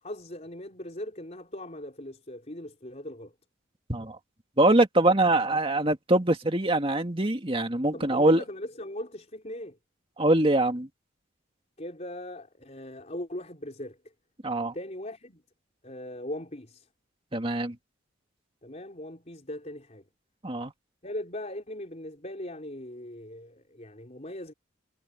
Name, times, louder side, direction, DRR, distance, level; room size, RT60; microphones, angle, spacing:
voice 1, 0.0-3.3 7.9-9.8 11.8-14.0 14.7-15.4 15.8-16.9 18.6-20.0 21.0-24.5, left 1 dB, 35° left, 4.4 m, -39 dB
voice 2, 4.6-8.4 10.2-10.9 14.4-14.7 17.3-17.8 20.4-20.7, right 1 dB, 25° right, 2.2 m, -23 dB
head